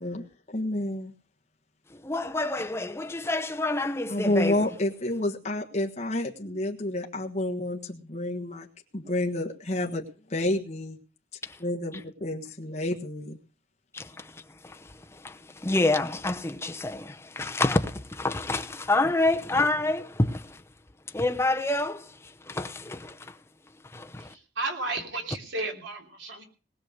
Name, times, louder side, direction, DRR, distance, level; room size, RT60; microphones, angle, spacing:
voice 1, 0.0-1.1 4.1-8.7 8.9-10.0 10.3-11.0 11.6-13.4, left 1 dB, 40° left, 1.4 m, -29 dB
voice 2, 1.9-4.7 11.4-11.6 13.9-20.6 21.1-23.4 23.9-24.3, left 2 dB, 15° left, 0.7 m, -28 dB
voice 3, 24.2-26.4, right 2 dB, 80° right, 3.3 m, -33 dB
19.5 x 6.7 x 6.5 m
head